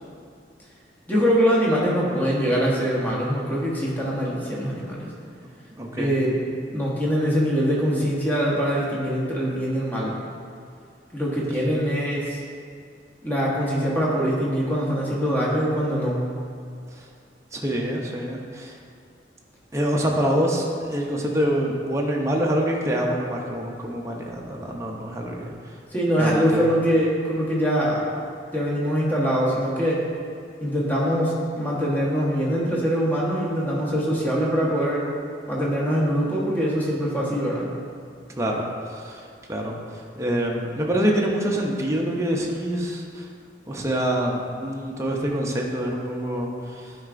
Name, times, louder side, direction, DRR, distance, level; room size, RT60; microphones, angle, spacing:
voice 1, 1.1-5.1 6.0-6.4 6.7-10.1 11.1-12.4 13.2-16.3 25.9-28.1 28.5-30.0 30.6-35.0 35.5-37.7, equal, 10° left, -5 dB, 1.0 m, -23 dB
voice 2, 5.4-6.2 16.9-17.1 17.5-18.8 19.7-25.7 26.2-26.7 38.4-43.3 43.7-46.9, equal, 15° right, -1 dB, 0.6 m, -26 dB
9.4 x 4.6 x 2.5 m, 2.3 s
head